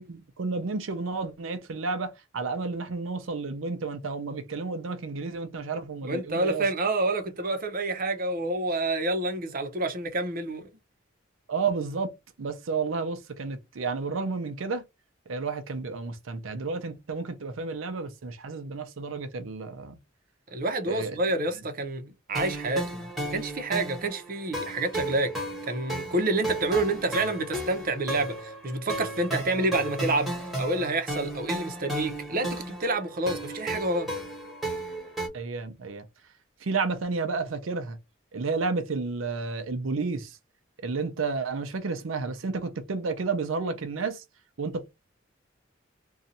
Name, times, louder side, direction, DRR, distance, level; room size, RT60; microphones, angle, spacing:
voice 1, 0.0-6.7 11.5-12.1 12.4-14.8 15.3-20.0 20.9-21.2 35.3-36.1 36.6-38.0 38.3-40.4 40.8-44.2 44.6-44.9, right 4 dB, 90° right, 0.6 m, -31 dB
voice 2, 6.0-10.6 20.5-23.0 23.3-25.3 25.7-34.1, right 2 dB, 45° right, 0.7 m, -28 dB
sound 1, 22.4-35.3, right 1 dB, ahead, 1.2 m, -34 dB
2.6 x 2.3 x 4.0 m
head